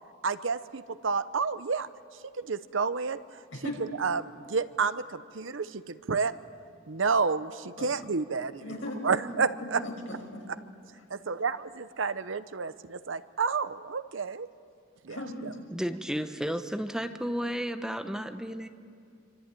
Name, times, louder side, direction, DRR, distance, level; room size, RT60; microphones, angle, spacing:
voice 1, 0.2-1.9 2.4-3.2 4.0-6.3 6.9-8.8 9.0-9.8 11.1-14.5 15.0-15.2, right 5 dB, 75° right, 13 dB, 0.8 m, -30 dB
voice 2, 8.6-9.2 9.6-10.4 15.1-15.6, left 1 dB, 85° left, 1 dB, 6.0 m, -37 dB
voice 3, 15.7-18.7, equal, 5° right, 7 dB, 0.9 m, -32 dB
26.0 x 25.0 x 9.1 m, 2.4 s
head